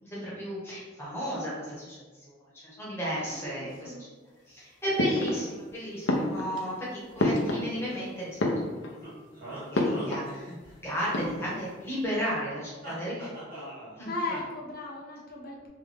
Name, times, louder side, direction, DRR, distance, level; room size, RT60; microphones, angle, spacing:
voice 1, 0.0-2.3 2.6-4.1 4.5-8.4 8.7-13.6 14.0-14.1, equal, 15° left, -6 dB, 1.3 m, -34 dB
voice 2, 3.2-4.1 9.7-10.0 14.0-15.7, left 2 dB, 50° left, -4 dB, 1.0 m, -37 dB
sound 1, 5.0-5.7 6.1-8.0 8.3-9.1 9.7-10.4 10.6-10.7 11.0-11.7, left 1 dB, 75° left, 0.7 m, -29 dB
sound 2, 9.0-10.8 11.1-12.2 12.8-14.0 14.3-14.4, right 1 dB, 50° right, 1.3 m, -43 dB
3.5 x 3.2 x 3.5 m, 1.3 s
head